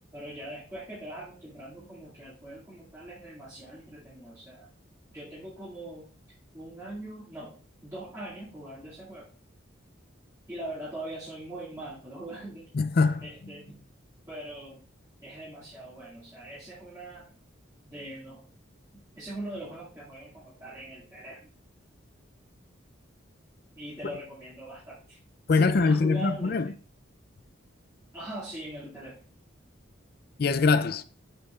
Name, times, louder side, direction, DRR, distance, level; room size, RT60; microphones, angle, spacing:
voice 1, 0.1-4.7 5.1-6.1 6.5-7.6 7.8-9.3 10.5-12.7 13.2-13.8 14.3-14.8 15.2-17.3 17.8-18.4 18.9-21.5 23.8-25.2 25.5-26.7 28.1-29.2, right 1 dB, 15° right, 2.2 m, -41 dB
voice 2, 12.7-13.2 25.5-26.7 30.4-31.0, left 4 dB, 50° left, 0.4 m, -23 dB
7.9 x 6.8 x 2.4 m
head